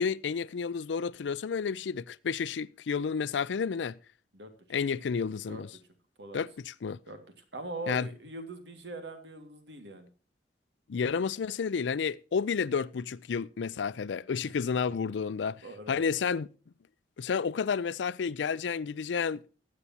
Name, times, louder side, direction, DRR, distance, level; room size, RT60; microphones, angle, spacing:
voice 1, 0.0-4.0 4.7-5.7 6.3-7.0 7.9-8.1 10.9-16.5 17.2-19.4, left 6 dB, 85° left, 0.4 m, -31 dB
voice 2, 7.5-10.1 15.6-16.0, right 1 dB, 75° right, 2.1 m, -41 dB
20.0 x 8.4 x 2.8 m
head